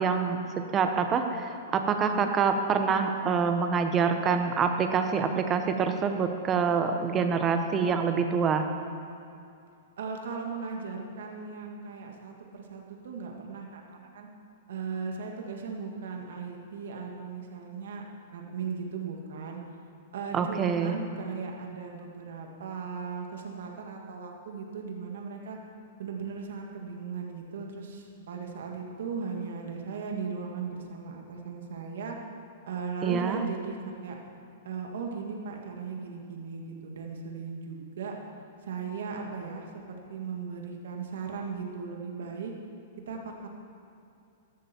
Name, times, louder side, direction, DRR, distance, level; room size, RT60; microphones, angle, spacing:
voice 1, 0.0-8.7 20.3-21.0 33.0-33.4, right 6 dB, 20° right, 6 dB, 0.9 m, -26 dB
voice 2, 2.0-2.3 5.2-5.3 7.9-8.0 10.0-14.3 14.7-18.0 18.3-19.6 20.1-25.6 26.0-32.2 32.7-33.8 34.0-34.2 34.6-38.2 38.6-42.5 43.1-43.5, right 5 dB, 75° right, 1 dB, 2.0 m, -37 dB
14.0 x 12.5 x 4.5 m, 2.5 s
hypercardioid pair, 160°, 0 cm